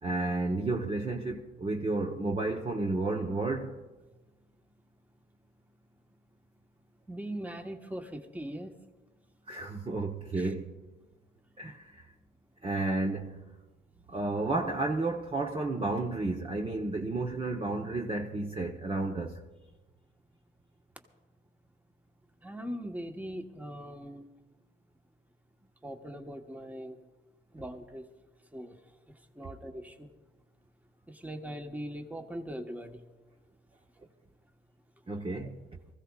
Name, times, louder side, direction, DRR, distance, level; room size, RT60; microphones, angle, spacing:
voice 1, 0.0-3.7 9.5-10.7 11.6-12.0 12.6-13.4 14.1-19.4 35.1-35.6, right 2 dB, 25° right, 1.0 m, -32 dB
voice 2, 7.1-8.7 10.4-10.5 22.4-24.3 25.8-27.0 27.5-28.0 28.5-28.7 29.3-30.1 31.1-33.0, equal, 10° right, 1.2 m, -40 dB
24.5 x 15.0 x 2.4 m
cardioid pair, 90°, 20 cm